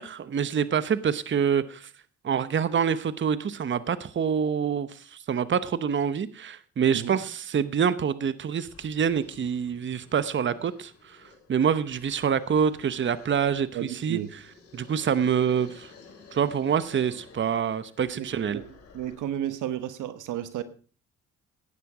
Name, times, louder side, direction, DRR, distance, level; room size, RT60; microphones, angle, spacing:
voice 1, 0.0-1.9 2.2-11.2 11.5-14.2 14.7-15.9 16.3-18.6, right 7 dB, 40° right, 0.9 m, -26 dB
sound 1, 8.6-19.4, left 4 dB, 50° left, 6.3 m, -53 dB
voice 2, 13.7-14.3 18.1-18.6 18.9-20.6, right 11 dB, 85° right, 1.3 m, -33 dB
16.0 x 10.0 x 4.9 m
cardioid pair, 90°, 30 cm